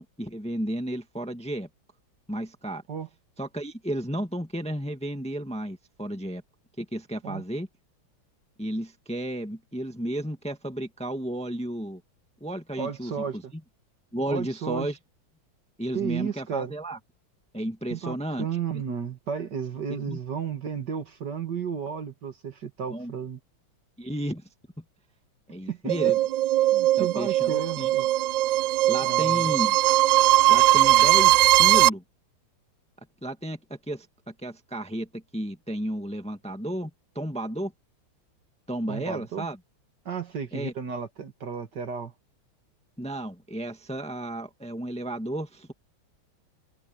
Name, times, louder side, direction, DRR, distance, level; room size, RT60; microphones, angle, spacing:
voice 1, 0.0-1.7 2.3-2.8 3.4-6.4 6.8-7.7 8.6-12.0 12.4-13.4 14.1-15.0 15.8-17.0 17.5-18.4 18.7-18.8 19.9-20.2 22.9-23.1 24.0-24.4 25.5-26.2 27.0-27.9 28.9-29.8 30.5-32.0 33.2-36.9 37.1-37.7 38.7-39.6 40.5-40.7 43.0-45.7, right 1 dB, 5° left, 1.4 m, -33 dB
voice 2, 12.8-13.5 14.3-14.9 15.9-16.7 17.9-23.4 25.7-26.1 26.7-28.1 29.0-29.5 38.9-39.5 40.1-42.1, right 7 dB, 55° right, 2.3 m, -33 dB
sound 1, 25.9-31.9, right 15 dB, 75° right, 1.1 m, -20 dB
omnidirectional pair, 2.2 m